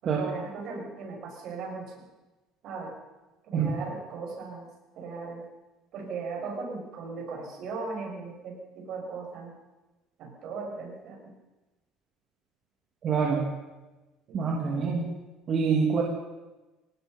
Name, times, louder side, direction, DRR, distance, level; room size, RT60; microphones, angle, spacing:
voice 1, 0.0-2.0 2.6-3.0 3.5-4.7 5.0-5.4 5.9-9.5 10.2-11.3 14.3-15.0, right 4 dB, 55° right, 0 dB, 7.5 m, -38 dB
voice 2, 13.0-13.4 14.3-15.0 15.5-16.0, right 5 dB, 40° right, -1 dB, 3.1 m, -25 dB
25.5 x 19.0 x 5.7 m, 1.1 s
cardioid pair, 140°, 0 cm